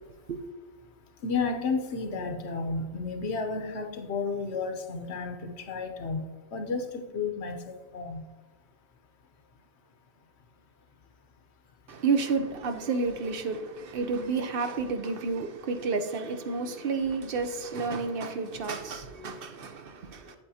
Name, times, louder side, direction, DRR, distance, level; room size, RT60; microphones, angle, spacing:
voice 1, 1.2-8.2, left 4 dB, 90° left, 5 dB, 1.1 m, -32 dB
voice 2, 11.9-20.3, right 4 dB, 65° right, 7 dB, 0.9 m, -30 dB
8.2 x 8.2 x 2.8 m, 1.2 s
omnidirectional pair, 1.1 m